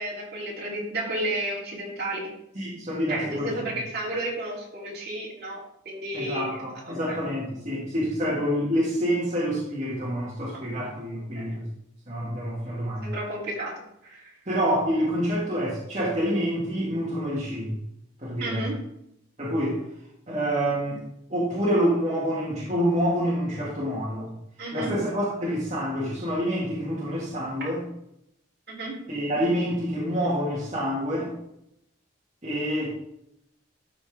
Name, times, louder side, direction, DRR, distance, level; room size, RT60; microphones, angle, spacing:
voice 1, 0.0-2.3 3.1-6.6 6.8-7.2 10.5-10.6 11.3-11.6 13.0-14.3 18.4-18.8 24.6-25.0 27.6-27.7 28.7-29.0, right 1 dB, 50° right, -5 dB, 3.2 m, -32 dB
voice 2, 2.6-3.5 6.1-11.7 12.1-13.1 14.5-17.7 18.2-18.7 19.4-19.8 20.3-21.0 21.3-24.3 24.7-27.8 29.1-31.3 32.4-32.9, equal, 35° right, -8 dB, 2.0 m, -27 dB
13.0 x 4.4 x 3.6 m, 0.78 s
head